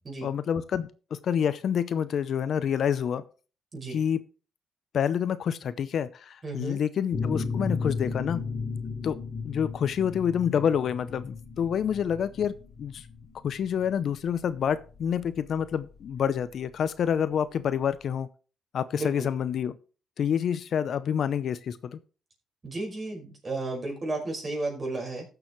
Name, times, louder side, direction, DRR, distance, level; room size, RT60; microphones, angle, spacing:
voice 1, 0.2-0.9 1.2-3.2 3.9-4.2 4.9-8.4 9.0-9.2 9.4-13.0 13.4-18.3 18.7-19.8 20.2-22.0, left 8 dB, 60° left, 15 dB, 0.6 m, -28 dB
voice 2, 6.4-6.8 19.0-19.3 22.6-25.2, right 2 dB, 30° right, 0 dB, 5.2 m, -33 dB
sound 1, 7.1-16.5, left 4 dB, 45° left, 2.9 m, -35 dB
15.5 x 6.9 x 3.1 m, 0.35 s
cardioid pair, 90°, 0 cm